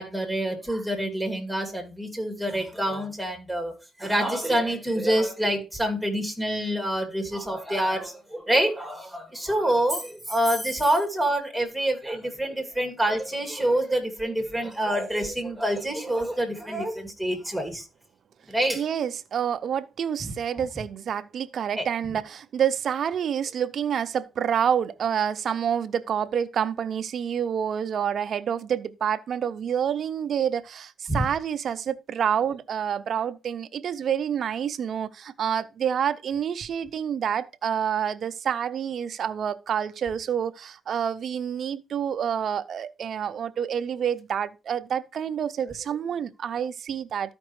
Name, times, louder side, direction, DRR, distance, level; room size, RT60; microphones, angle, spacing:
voice 1, 0.0-3.7 4.0-17.8 18.5-18.8 20.2-20.3 21.8-21.9 31.1-31.3, right 1 dB, ahead, 2.5 m, -26 dB
voice 2, 18.7-47.3, right 8 dB, 60° right, 0.6 m, -28 dB
13.0 x 5.2 x 3.2 m
cardioid pair, 90°, 0 cm